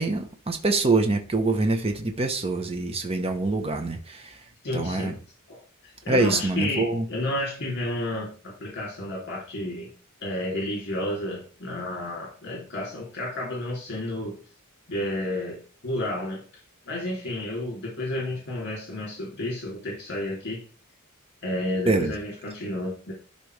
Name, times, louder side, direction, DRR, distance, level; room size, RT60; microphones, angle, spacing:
voice 1, 0.0-4.4 4.7-5.1 6.1-7.0 21.9-22.1, right 2 dB, 25° right, 0.9 m, -25 dB
voice 2, 4.6-5.2 5.5-9.9 10.2-14.4 14.9-16.4 16.9-20.6 21.4-23.1, left 1 dB, 50° left, 2.8 m, -31 dB
12.0 x 4.1 x 3.3 m
head